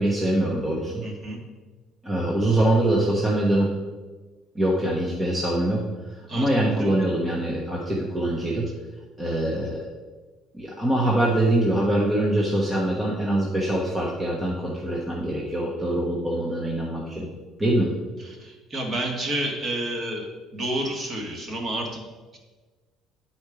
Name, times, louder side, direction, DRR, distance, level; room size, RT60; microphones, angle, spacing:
voice 1, 0.0-1.0 2.0-3.7 4.5-5.8 6.3-8.7 9.2-9.8 10.5-17.3 17.6-17.9, right 1 dB, 15° right, -4 dB, 1.1 m, -23 dB
voice 2, 1.0-1.4 6.3-7.0 18.2-22.0 22.3-22.4, right 1 dB, 35° right, 0 dB, 1.8 m, -30 dB
9.5 x 4.4 x 4.9 m, 1.3 s
cardioid pair, 130°, 0 cm